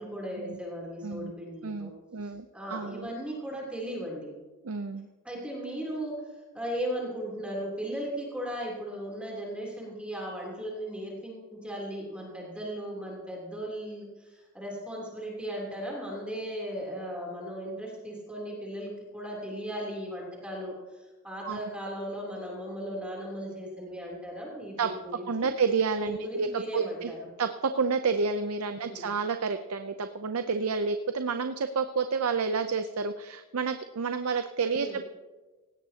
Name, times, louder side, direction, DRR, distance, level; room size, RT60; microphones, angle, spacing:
voice 1, 0.0-1.9 2.5-4.3 5.2-25.5 26.0-27.2 28.7-29.1 34.7-35.0, equal, 5° right, -3 dB, 3.2 m, -37 dB
voice 2, 1.6-3.1 4.6-5.1 21.4-21.6 24.8-24.9 25.3-27.1 27.4-35.1, right 5 dB, 80° right, 8 dB, 0.6 m, -30 dB
18.0 x 16.5 x 2.9 m, 1.2 s
head